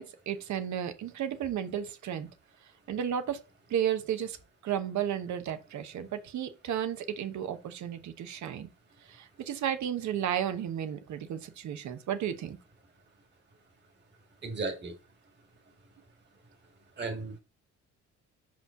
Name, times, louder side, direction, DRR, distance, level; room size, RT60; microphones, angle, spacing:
voice 1, 0.0-2.3 2.6-3.4 3.7-4.4 4.6-8.7 9.0-12.6, right 9 dB, 70° right, 1.1 m, -33 dB
voice 2, 14.4-14.9 17.0-17.4, right 3 dB, 35° right, 1.8 m, -35 dB
5.7 x 5.0 x 3.7 m
cardioid pair, 90°, 30 cm